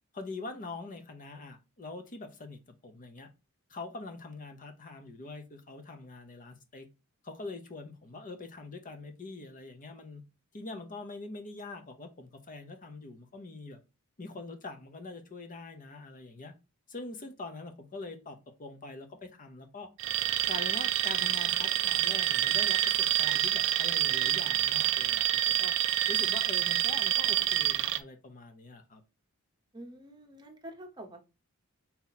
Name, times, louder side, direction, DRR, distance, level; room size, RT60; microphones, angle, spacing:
voice 1, 0.1-3.3 3.7-6.9 7.2-10.2 10.5-13.8 14.2-16.5 16.9-19.9 20.5-25.7 26.1-29.0, left 3 dB, 35° left, 0.8 m, -44 dB
Alarm, 20.0-28.0, right 12 dB, 55° right, 0.4 m, -27 dB
voice 2, 29.7-31.3, right 1 dB, 20° right, 0.9 m, -47 dB
4.2 x 2.9 x 4.1 m
head